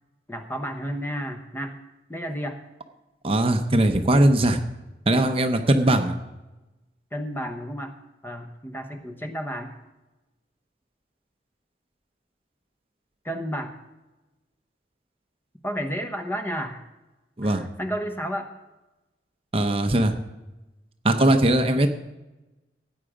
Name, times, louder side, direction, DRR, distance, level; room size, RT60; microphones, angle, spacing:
voice 1, 0.3-1.8 2.1-2.6 7.1-7.9 8.2-9.7 13.2-13.7 15.6-16.8 17.4-18.5, equal, 10° left, 6 dB, 1.0 m, -31 dB
voice 2, 3.2-4.6 5.1-6.1 17.4-17.6 19.5-20.1 21.0-21.9, right 1 dB, 30° right, 6 dB, 0.7 m, -20 dB
16.5 x 8.9 x 5.0 m, 1.0 s
head